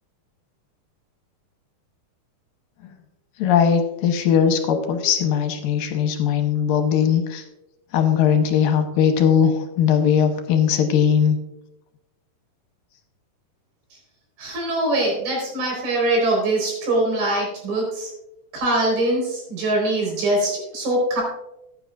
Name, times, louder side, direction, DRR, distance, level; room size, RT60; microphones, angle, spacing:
voice 1, 3.4-7.4 7.9-11.4, left 8 dB, 75° left, 4 dB, 2.5 m, -19 dB
voice 2, 14.4-18.1 18.5-21.2, right 1 dB, 90° right, -2 dB, 6.4 m, -23 dB
14.5 x 10.5 x 2.5 m, 0.90 s
omnidirectional pair, 4.3 m